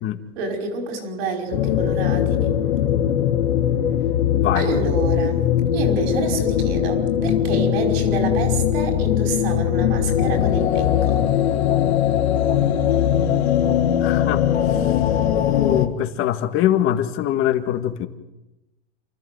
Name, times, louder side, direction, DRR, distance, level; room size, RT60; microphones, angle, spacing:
voice 1, 0.4-2.5 4.5-5.5 5.7-11.2, right 3 dB, 65° right, 3 dB, 5.5 m, -28 dB
sound 1, 1.5-15.9, left 10 dB, 85° left, 2.1 m, -20 dB
voice 2, 4.3-4.7 14.0-15.0 15.5-18.1, left 11 dB, 40° left, 8 dB, 1.9 m, -23 dB
29.0 x 14.0 x 7.9 m, 1.0 s
supercardioid pair, 130°, 32 cm